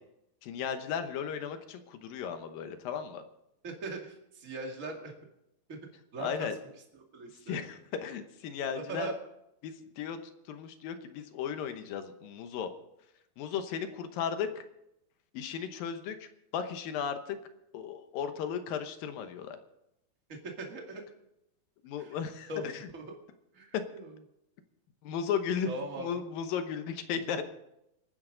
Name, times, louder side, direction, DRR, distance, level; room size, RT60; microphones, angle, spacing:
voice 1, 0.4-3.2 6.2-6.6 7.5-9.1 9.6-10.2 10.5-12.7 13.4-14.6 15.3-17.4 17.7-19.6 21.8-22.7 23.7-23.8 25.0-25.7 26.0-27.4, left 7 dB, 70° left, 8 dB, 2.5 m, -35 dB
voice 2, 3.6-5.1 5.7-5.8 6.1-6.5 6.9-7.6 8.8-9.2 20.3-21.0 22.0-22.2 22.5-22.6 22.9-23.2 23.5-24.2 25.7-26.2, right 2 dB, 25° right, 1 dB, 1.8 m, -40 dB
27.0 x 9.6 x 3.9 m, 0.84 s
omnidirectional pair, 4.5 m